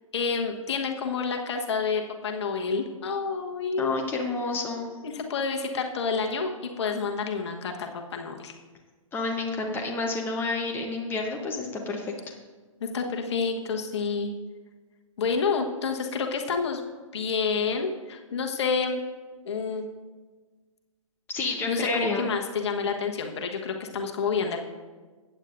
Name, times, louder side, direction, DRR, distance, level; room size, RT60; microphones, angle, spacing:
voice 1, 0.1-3.9 5.0-8.5 12.8-14.3 15.2-16.8 17.1-19.0 19.4-19.9 21.4-24.6, left 5 dB, 55° left, 3 dB, 1.2 m, -29 dB
voice 2, 3.8-4.9 9.1-12.1 21.3-22.3, left 3 dB, 10° left, 1 dB, 0.9 m, -29 dB
15.0 x 9.0 x 2.6 m, 1.4 s
figure-of-eight pair, 125°, 17 cm